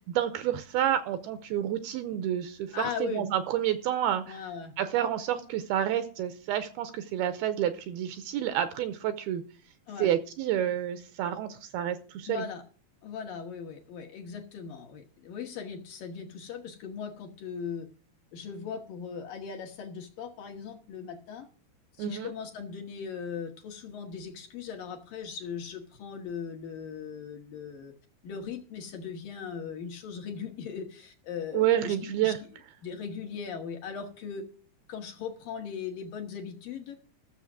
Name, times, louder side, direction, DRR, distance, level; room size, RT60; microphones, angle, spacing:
voice 1, 0.1-4.4 4.8-9.4 10.0-12.5 22.0-22.3 31.5-32.4, right 11 dB, 80° right, 11 dB, 2.4 m, -29 dB
voice 2, 2.7-3.3 4.3-4.7 9.9-10.1 12.3-12.6 13.0-17.9 18.3-21.5 22.0-27.9 28.2-32.3 32.8-34.5 34.9-37.0, left 6 dB, 65° left, 1 dB, 2.4 m, -39 dB
14.0 x 7.0 x 6.1 m, 0.41 s
omnidirectional pair, 4.9 m